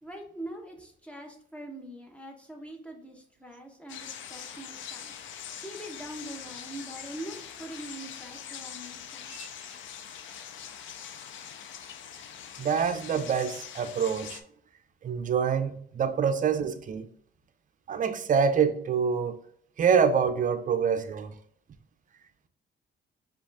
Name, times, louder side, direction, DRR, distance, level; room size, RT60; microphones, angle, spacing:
voice 1, 0.0-5.1 5.6-9.4, right 1 dB, 5° left, 1.0 m, -43 dB
sound 1, 3.9-14.4, left 8 dB, 75° left, 0.5 m, -43 dB
voice 2, 12.6-14.4 15.0-17.1 17.9-19.4 19.8-21.3, right 6 dB, 40° right, 0.5 m, -26 dB
5.1 x 2.5 x 3.5 m
cardioid pair, 90°, 20 cm